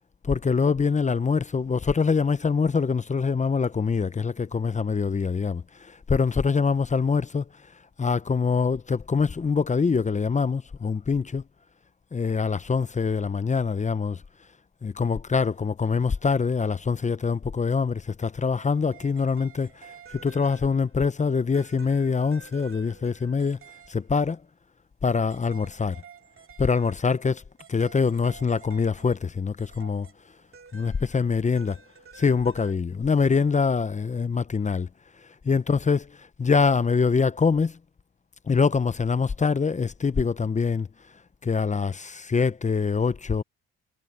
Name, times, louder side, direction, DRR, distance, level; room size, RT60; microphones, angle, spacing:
voice 1, 0.2-7.5 8.0-11.4 12.1-14.2 14.8-23.6 23.9-24.4 25.0-26.0 26.6-27.4 27.7-30.1 30.7-31.7 32.1-34.9 35.4-37.8 38.5-40.9 41.4-43.4, left 5 dB, 25° left, 0.7 m, -24 dB
sound 1, 18.5-21.0 21.5-24.1 25.3-29.3 29.6-32.7, right 6 dB, 45° right, 2.9 m, -50 dB
cardioid pair, 90°, 30 cm